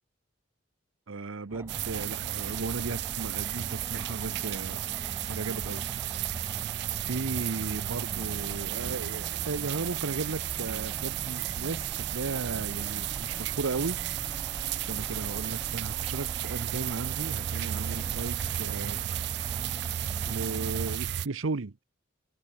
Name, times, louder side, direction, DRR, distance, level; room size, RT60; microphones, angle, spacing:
voice 1, 1.1-4.8 5.3-5.8 7.1-14.0 14.9-19.0 20.2-21.8, right 3 dB, 80° right, 0.8 m, -35 dB
sound 1, 1.5-21.0, equal, 10° right, 2.3 m, -44 dB
sound 2, 1.7-21.3, right 12 dB, 55° right, 0.3 m, -33 dB
head